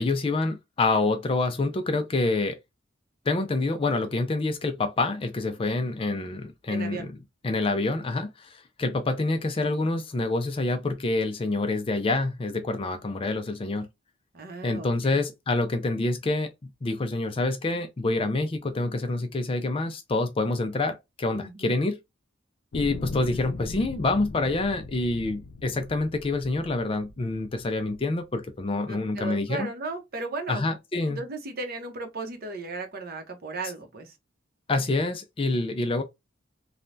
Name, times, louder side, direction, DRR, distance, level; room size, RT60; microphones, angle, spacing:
voice 1, 0.0-2.6 3.3-7.1 7.4-13.9 14.6-22.0 22.7-29.7 30.5-31.2 34.7-36.0, left 2 dB, 30° left, 0.4 m, -27 dB
voice 2, 6.7-7.1 14.3-15.2 21.3-21.8 28.9-30.7 31.1-34.1, right 3 dB, 50° right, 0.8 m, -36 dB
sound 1, 22.7-28.0 28.7-28.8, left 3 dB, 80° left, 0.5 m, -40 dB
3.2 x 2.2 x 2.5 m
head